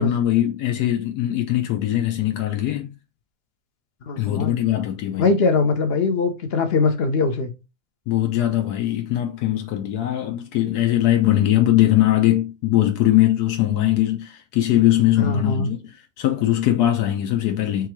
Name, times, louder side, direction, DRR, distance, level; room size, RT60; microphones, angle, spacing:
voice 1, 0.0-2.9 4.2-5.3 8.1-15.8 16.2-17.9, left 13 dB, 80° left, 1.2 m, -21 dB
voice 2, 4.0-4.5 5.2-7.5 15.2-15.7, left 4 dB, 55° left, 0.7 m, -21 dB
3.7 x 3.1 x 4.5 m
omnidirectional pair, 1.7 m